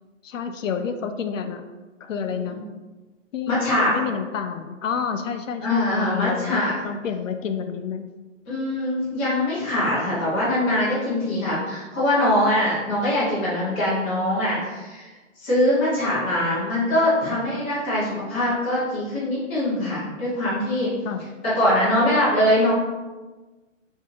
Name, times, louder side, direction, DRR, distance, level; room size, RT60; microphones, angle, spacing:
voice 1, 0.2-1.6 2.0-2.6 3.3-8.1 21.1-21.3, left 7 dB, 75° left, 7 dB, 0.5 m, -29 dB
voice 2, 3.5-4.0 5.6-6.7 8.5-15.1 15.4-20.9 21.4-22.7, left 1 dB, 10° left, -11 dB, 0.4 m, -22 dB
2.8 x 2.7 x 3.7 m, 1.2 s
hypercardioid pair, 140°, 39 cm